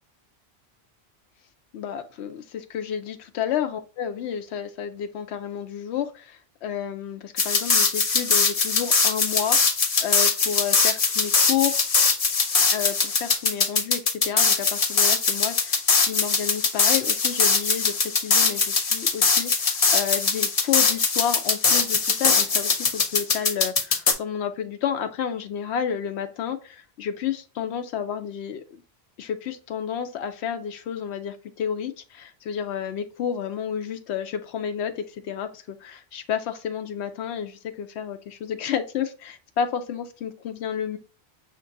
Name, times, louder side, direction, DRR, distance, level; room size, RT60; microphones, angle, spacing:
voice 1, 1.7-11.8 12.7-28.6 29.2-41.0, left 8 dB, 85° left, 8 dB, 0.9 m, -31 dB
sound 1, 7.4-24.1, left 4 dB, 40° left, 0.6 m, -21 dB
5.8 x 2.9 x 2.6 m, 0.36 s
omnidirectional pair, 1.1 m